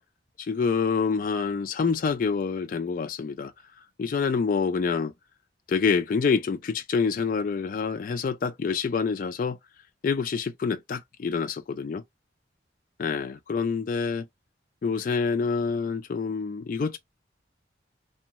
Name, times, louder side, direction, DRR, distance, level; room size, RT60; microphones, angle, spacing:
voice 1, 0.4-5.1 5.7-9.6 10.0-12.0 13.0-14.3 14.8-17.0, left 5 dB, 45° left, 0.3 m, -27 dB
3.0 x 2.1 x 2.8 m
head